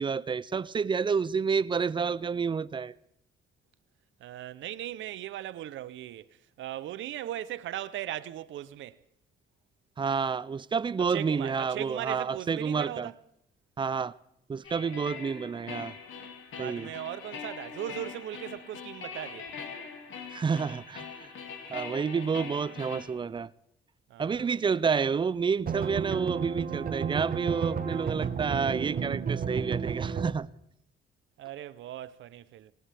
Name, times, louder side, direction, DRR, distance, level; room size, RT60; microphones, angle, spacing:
voice 1, 0.0-2.9 10.0-13.1 13.8-14.1 14.5-15.9 16.6-16.9 20.3-21.3 21.7-23.5 24.2-30.5, right 5 dB, 25° right, 0.5 m, -29 dB
voice 2, 4.2-6.3 6.6-9.0 11.0-13.2 14.8-15.0 16.5-19.5 24.1-24.5 31.4-32.7, right 12 dB, 75° right, 0.7 m, -38 dB
sound 1, 14.6-23.1, left 6 dB, 80° left, 2.2 m, -42 dB
sound 2, 25.7-30.3, right 6 dB, 45° right, 1.1 m, -32 dB
18.5 x 18.0 x 3.4 m
cardioid pair, 90°, 20 cm